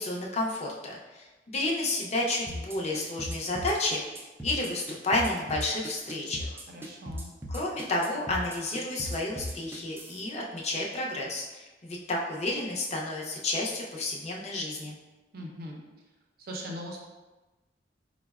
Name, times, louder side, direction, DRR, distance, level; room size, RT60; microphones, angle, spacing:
voice 1, 0.0-6.5 7.5-14.9, left 2 dB, 40° left, -2 dB, 0.5 m, -31 dB
sound 1, 2.5-10.2, equal, 15° right, 0.3 m, -37 dB
voice 2, 6.7-7.3 15.3-15.8 16.4-17.0, equal, 55° right, -1 dB, 0.6 m, -40 dB
4.8 x 2.1 x 2.3 m, 1.2 s
head